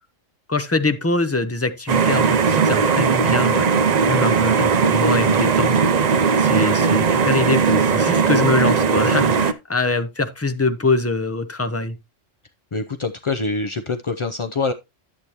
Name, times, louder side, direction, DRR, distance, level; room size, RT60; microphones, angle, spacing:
voice 1, 0.5-3.7 4.1-5.8 6.4-12.0, left 3 dB, 15° left, 0.6 m, -23 dB
sound 1, 1.9-9.5, right 5 dB, 45° right, 0.6 m, -18 dB
voice 2, 12.7-14.7, left 3 dB, 50° left, 0.3 m, -25 dB
10.5 x 8.2 x 2.9 m
omnidirectional pair, 1.3 m